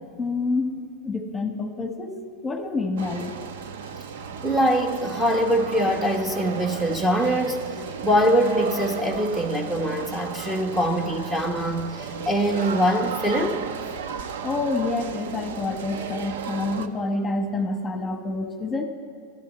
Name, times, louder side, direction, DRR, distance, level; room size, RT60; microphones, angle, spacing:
voice 1, 0.2-2.1 2.4-3.3 14.4-18.8, left 3 dB, 15° left, 5 dB, 1.3 m, -28 dB
sound 1, 3.0-16.9, right 6 dB, 80° right, 0.8 m, -34 dB
voice 2, 4.4-7.6 8.0-13.6, equal, 10° right, 3 dB, 1.2 m, -23 dB
14.0 x 11.5 x 8.0 m, 2.3 s
supercardioid pair, 125°, 0 cm